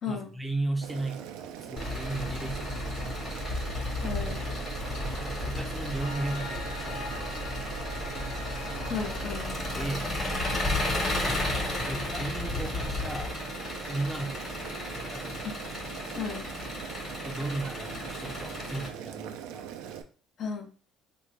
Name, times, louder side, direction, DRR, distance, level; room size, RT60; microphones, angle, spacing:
voice 1, 0.1-3.4 5.2-7.5 9.7-10.1 11.2-13.3 13.9-14.5 14.9-15.5 17.2-19.7, right 2 dB, 10° right, 4 dB, 0.5 m, -36 dB
Boiling, 0.8-20.0, right 10 dB, 85° right, 0.4 m, -42 dB
Engine, 1.8-18.9, left 2 dB, 30° left, 1.2 m, -33 dB
voice 2, 4.0-4.5 8.9-9.5 15.4-15.5 16.2-16.5 20.4-20.7, left 6 dB, 55° left, 5 dB, 0.7 m, -34 dB
Piano, 6.0-17.2, left 2 dB, 70° left, 1.1 m, -46 dB
3.2 x 2.6 x 3.2 m, 0.38 s
cardioid pair, 100°, 0 cm